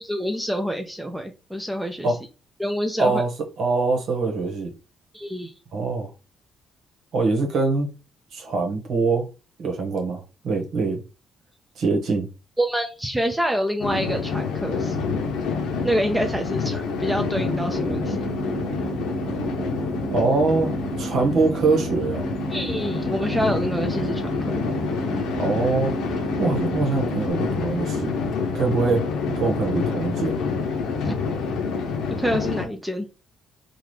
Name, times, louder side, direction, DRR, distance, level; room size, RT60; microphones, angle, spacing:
voice 1, 0.0-2.1 2.6-3.2 5.1-5.5 12.6-15.2 15.8-18.3 22.5-24.2 31.0-31.2 32.1-33.1, equal, 5° right, 0.5 m, -27 dB
voice 2, 3.0-3.3 3.6-4.7 5.7-6.1 7.1-7.9 8.3-9.3 9.6-11.0 11.7-12.3 20.1-20.7 21.0-22.2 25.4-28.1 28.5-30.4, right 3 dB, 70° right, 1.2 m, -23 dB
sound 1, 13.8-32.7, left 5 dB, 90° left, 0.7 m, -27 dB
sound 2, 17.3-27.3, right 5 dB, 90° right, 1.0 m, -33 dB
3.8 x 2.4 x 3.2 m
cardioid pair, 90°, 0 cm